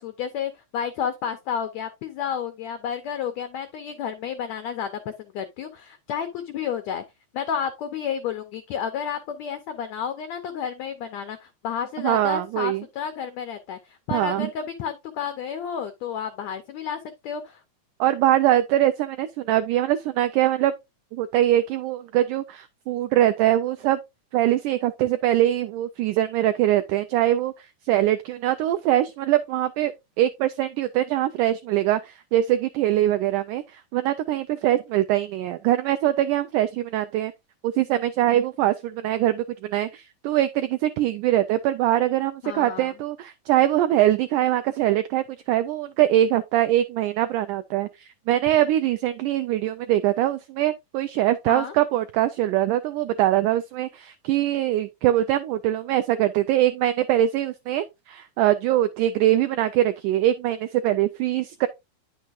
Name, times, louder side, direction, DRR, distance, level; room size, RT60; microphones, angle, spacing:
voice 1, 0.0-7.0 7.3-17.6 42.4-42.9 51.5-51.7, left 7 dB, 90° left, 1.5 m, -31 dB
voice 2, 12.0-12.8 14.1-14.5 18.0-20.7 21.1-24.0 24.3-29.9 30.2-37.3 37.6-61.7, right 13 dB, 80° right, 1.8 m, -23 dB
9.6 x 6.5 x 2.5 m
omnidirectional pair, 4.1 m